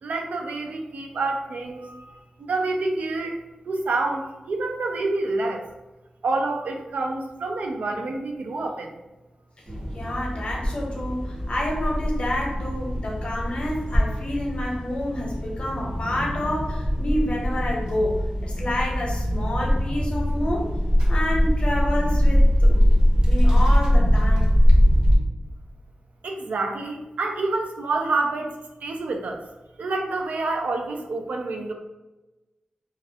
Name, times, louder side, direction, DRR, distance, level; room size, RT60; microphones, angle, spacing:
voice 1, 0.0-3.4 3.7-5.6 6.2-8.9 26.2-28.5 28.8-29.4 29.8-31.7, right 3 dB, 80° right, 2 dB, 0.3 m, -27 dB
sound 1, 9.7-25.2, equal, 35° right, 0.6 m, -22 dB
voice 2, 9.9-20.7 21.1-22.9 23.2-24.5, left 1 dB, 50° left, -2 dB, 0.7 m, -29 dB
2.3 x 2.0 x 2.7 m, 1.1 s
cardioid pair, 70°, 3 cm